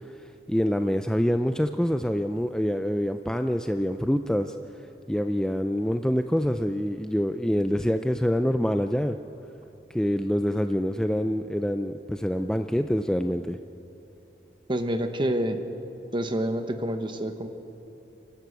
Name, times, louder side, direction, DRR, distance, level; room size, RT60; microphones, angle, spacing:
voice 1, 0.5-4.5 5.1-9.2 9.9-13.6, equal, 5° left, 7 dB, 0.4 m, -26 dB
voice 2, 14.7-15.6 16.1-17.5, right 1 dB, 30° right, 7 dB, 1.2 m, -27 dB
29.5 x 11.5 x 8.2 m, 2.9 s
head